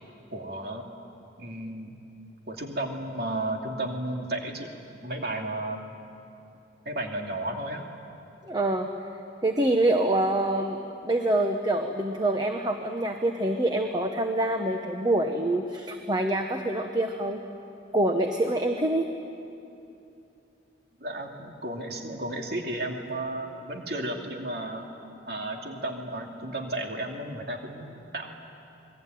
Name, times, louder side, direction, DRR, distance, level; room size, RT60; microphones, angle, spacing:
voice 1, 0.3-0.8 1.4-2.0 2.5-4.7 5.0-5.8 6.8-7.9 21.0-24.9 25.3-28.3, right 1 dB, 55° right, 2 dB, 2.7 m, -33 dB
voice 2, 8.5-8.9 9.4-17.4 17.9-19.1, right 1 dB, 20° right, 4 dB, 1.1 m, -26 dB
28.0 x 21.0 x 9.4 m, 2.7 s
head